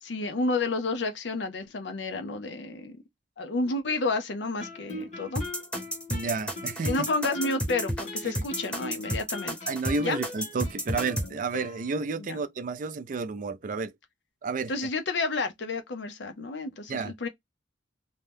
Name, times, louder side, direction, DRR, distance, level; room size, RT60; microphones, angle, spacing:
voice 1, 0.0-3.0 3.4-5.4 6.9-9.7 10.0-10.2 12.2-12.4 14.7-17.3, left 3 dB, 80° left, 0.6 m, -30 dB
Guitar, 4.6-12.3, left 2 dB, 45° left, 0.9 m, -41 dB
sound 1, 5.4-11.3, equal, 5° left, 0.8 m, -31 dB
voice 2, 6.1-6.9 8.2-8.3 9.1-9.2 9.7-13.9 14.4-14.7 16.9-17.1, right 4 dB, 45° right, 0.4 m, -31 dB
2.7 x 2.2 x 3.2 m
head